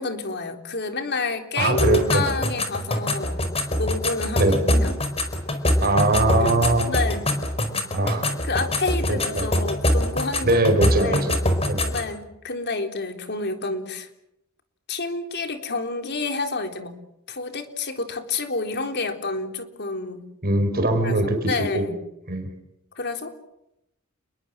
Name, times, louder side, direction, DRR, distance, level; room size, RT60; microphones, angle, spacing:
voice 1, 0.0-5.0 6.4-7.3 8.4-10.7 11.0-11.3 11.9-14.1 14.9-17.0 17.3-20.3 21.0-22.0 23.0-23.4, left 3 dB, 55° left, 6 dB, 3.8 m, -29 dB
voice 2, 1.6-2.2 4.4-4.6 5.8-6.8 7.9-8.2 9.1-9.5 10.4-11.3 11.7-11.8 20.4-21.8 22.3-22.5, right 2 dB, 45° right, 6 dB, 4.8 m, -21 dB
sound 1, 1.8-12.1, left 1 dB, 30° left, 4.3 m, -24 dB
30.0 x 21.5 x 7.6 m, 0.82 s
head